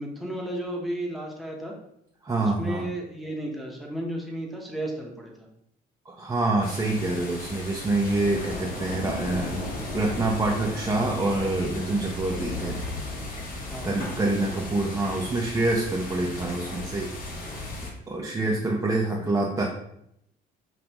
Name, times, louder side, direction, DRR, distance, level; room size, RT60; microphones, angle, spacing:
voice 1, 0.0-1.7 2.4-5.5 13.7-14.6 18.5-18.8, right 1 dB, ahead, -1 dB, 0.9 m, -34 dB
voice 2, 2.2-2.9 6.1-9.6 9.9-12.7 13.8-17.1 18.1-19.6, right 2 dB, 20° right, -2 dB, 0.6 m, -26 dB
sound 1, 6.6-17.9, left 2 dB, 60° left, 1.2 m, -35 dB
5.2 x 2.5 x 2.9 m, 0.76 s
cardioid pair, 110°, 17 cm